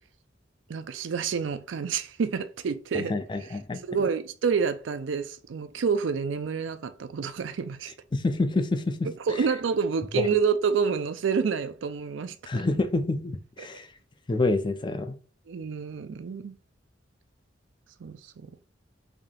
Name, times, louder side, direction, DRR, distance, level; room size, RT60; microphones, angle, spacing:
voice 1, 0.7-3.1 3.8-7.9 9.0-12.4 15.5-16.6 18.0-18.5, right 6 dB, 85° right, 0.4 m, -28 dB
voice 2, 2.9-3.8 8.1-9.1 10.2-10.3 12.5-13.9 14.3-15.2, left 2 dB, 25° left, 0.4 m, -27 dB
3.5 x 2.7 x 3.7 m
head